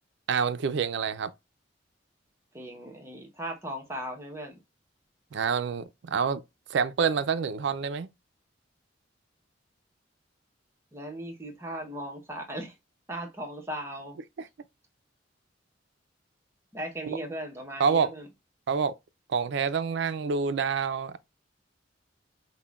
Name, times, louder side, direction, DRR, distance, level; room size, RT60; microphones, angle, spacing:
voice 1, 0.3-1.3 5.3-6.4 6.7-8.1 17.8-18.1 18.7-18.9 19.3-21.2, right 6 dB, 70° right, 0.4 m, -27 dB
voice 2, 2.5-4.6 10.9-12.8 13.1-14.2 16.7-18.3, right 1 dB, 15° right, 0.9 m, -37 dB
5.5 x 2.1 x 2.3 m
head